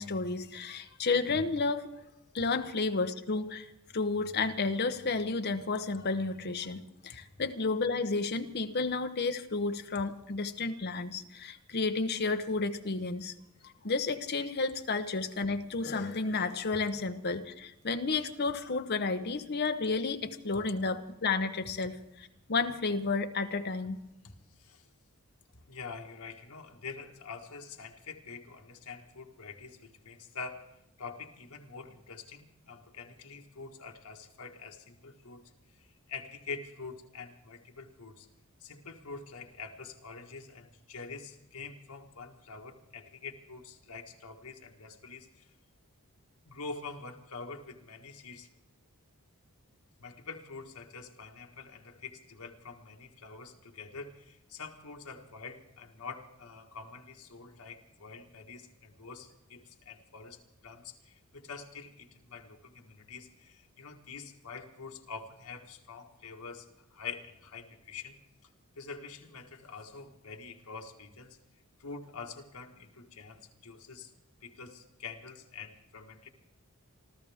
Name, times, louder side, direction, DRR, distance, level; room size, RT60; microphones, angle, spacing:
voice 1, 0.0-1.9 2.3-3.7 3.9-13.3 13.6-24.0, left 3 dB, 45° left, 8 dB, 0.9 m, -32 dB
voice 2, 25.7-35.4 35.8-38.3 38.6-45.5 46.4-48.5 50.0-68.2 68.7-71.4 71.8-74.1 74.4-76.3, left 4 dB, 80° left, 3 dB, 1.6 m, -46 dB
27.0 x 13.5 x 3.6 m, 0.88 s
head